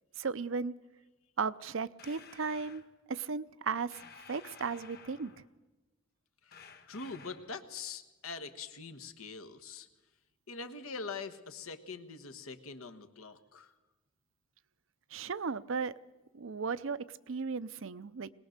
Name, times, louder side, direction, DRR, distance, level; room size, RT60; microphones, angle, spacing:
voice 1, 0.2-0.7 1.4-2.8 3.1-4.0 4.3-5.3 15.1-15.9 16.3-18.3, right 5 dB, 65° right, 16 dB, 0.6 m, -35 dB
sound 1, 2.0-2.9 3.9-5.5 6.5-7.6, left 6 dB, 45° left, 1.5 m, -54 dB
voice 2, 6.9-9.9 10.5-13.7, left 4 dB, 85° left, 8 dB, 1.4 m, -43 dB
21.0 x 19.0 x 6.6 m, 1.1 s
head